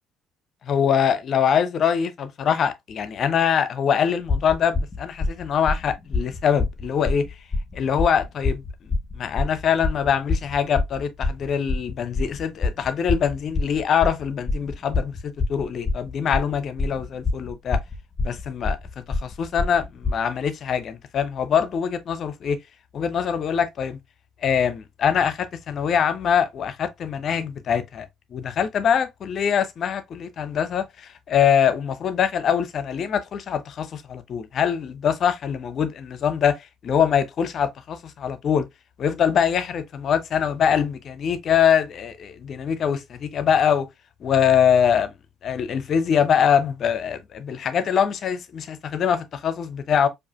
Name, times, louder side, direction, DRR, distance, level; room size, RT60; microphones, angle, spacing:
voice 1, 0.7-7.3 7.7-8.6 9.1-17.8 18.2-22.6 22.9-24.0 24.4-28.1 28.3-36.6 36.8-38.7 39.0-43.9 44.2-45.1 45.4-50.1, left 8 dB, 50° left, 0.6 m, -23 dB
sound 1, 4.3-20.2, left 3 dB, 25° left, 1.1 m, -26 dB
4.8 x 2.5 x 2.3 m
hypercardioid pair, 55°, 0 cm